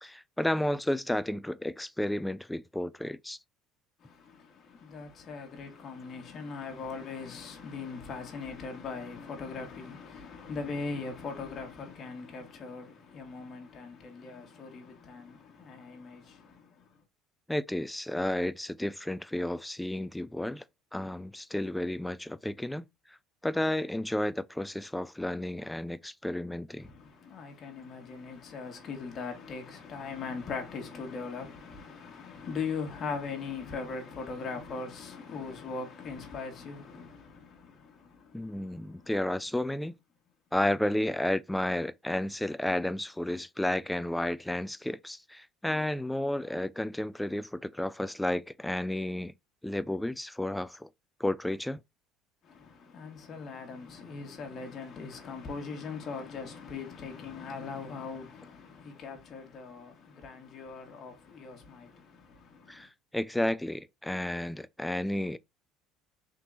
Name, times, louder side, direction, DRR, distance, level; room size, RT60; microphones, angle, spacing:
voice 1, 0.0-3.4 17.5-20.6 20.9-23.2 23.4-26.9 38.3-39.9 40.5-49.3 49.6-50.9 51.2-51.8 62.7-65.4, left 1 dB, 5° left, 0.3 m, -32 dB
voice 2, 4.0-17.0 26.8-39.1 52.4-62.9, left 4 dB, 45° left, 1.4 m, -40 dB
3.8 x 2.8 x 3.7 m
supercardioid pair, 95°, 0 cm